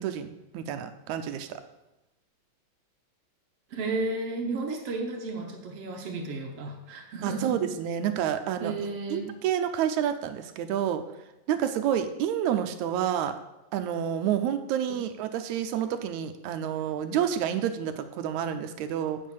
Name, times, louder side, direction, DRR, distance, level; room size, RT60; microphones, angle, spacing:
voice 1, 0.0-1.6 7.2-8.7 9.1-11.0 11.5-13.3 13.7-19.2, right 9 dB, 85° right, 9 dB, 2.0 m, -29 dB
voice 2, 3.7-7.5 8.6-9.3, right 3 dB, 65° right, 3 dB, 1.7 m, -33 dB
7.4 x 6.6 x 7.0 m, 0.96 s
omnidirectional pair, 3.4 m